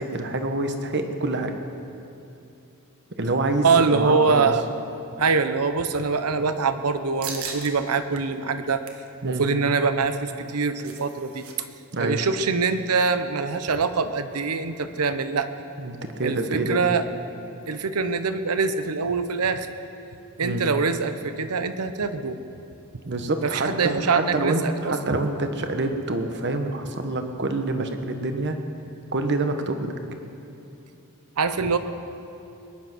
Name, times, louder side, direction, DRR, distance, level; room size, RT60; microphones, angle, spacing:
voice 1, 0.0-1.5 3.2-4.5 9.2-9.5 11.9-12.2 15.8-16.8 20.4-20.7 23.0-28.6 29.1-29.9, right 2 dB, 50° right, 6 dB, 1.2 m, -26 dB
voice 2, 3.6-4.6 5.2-8.8 9.2-11.4 12.0-15.5 16.2-17.0 17.7-19.7 20.4-22.4 23.4-25.2 31.4-31.8, right 4 dB, 90° right, 10 dB, 0.9 m, -24 dB
sound 1, 7.2-7.7 8.1-8.2 8.6-9.1 10.4-11.5 11.8-11.9 12.3-12.5, right 6 dB, 70° right, 1.5 m, -37 dB
21.5 x 10.5 x 6.1 m, 2.8 s
head